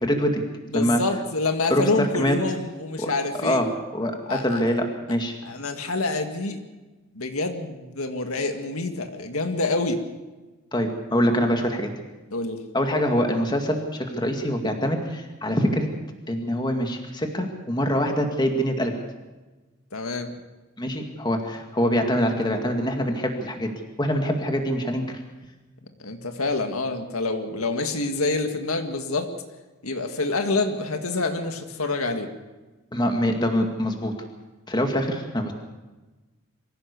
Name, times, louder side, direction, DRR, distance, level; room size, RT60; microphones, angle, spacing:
voice 1, 0.0-0.4 0.7-1.0 1.7-2.4 3.0-3.1 3.4-3.7 3.9-5.4 10.7-11.9 12.7-15.9 16.3-19.0 20.8-23.7 24.0-25.2 32.9-34.1 34.7-35.5, equal, 20° left, 4 dB, 2.2 m, -24 dB
voice 2, 0.7-3.6 4.3-4.7 5.4-6.6 7.1-10.0 12.3-12.6 19.9-20.3 26.0-29.3 29.8-32.3, left 3 dB, 85° left, 6 dB, 1.9 m, -27 dB
24.0 x 15.5 x 6.9 m, 1.2 s
head